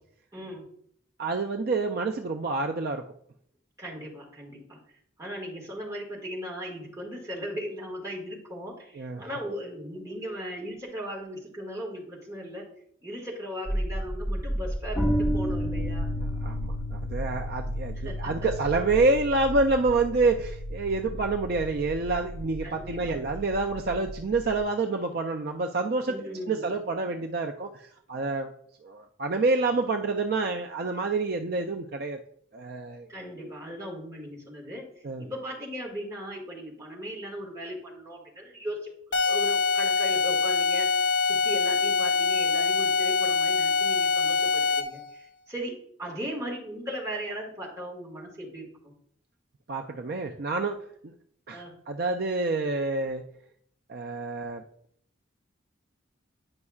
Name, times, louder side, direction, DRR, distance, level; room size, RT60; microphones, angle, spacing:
voice 1, 0.3-0.7 3.8-4.8 5.2-12.7 13.0-16.1 17.9-18.5 22.6-23.2 26.1-26.6 33.1-38.9 39.3-40.9 41.2-48.7 51.5-51.8, equal, 15° right, -3 dB, 1.8 m, -37 dB
voice 2, 1.2-3.0 9.0-9.2 16.4-26.1 26.5-28.5 28.8-32.2 32.5-33.1 35.0-35.2 49.7-50.8 51.0-51.1 51.5-53.2 53.9-54.6, right 3 dB, 50° right, 3 dB, 0.4 m, -28 dB
sound 1, 13.7-24.6, equal, 5° left, 1.3 m, -32 dB
sound 2, 39.1-45.0, left 4 dB, 70° left, 0.7 m, -24 dB
9.6 x 5.3 x 2.4 m, 0.65 s
head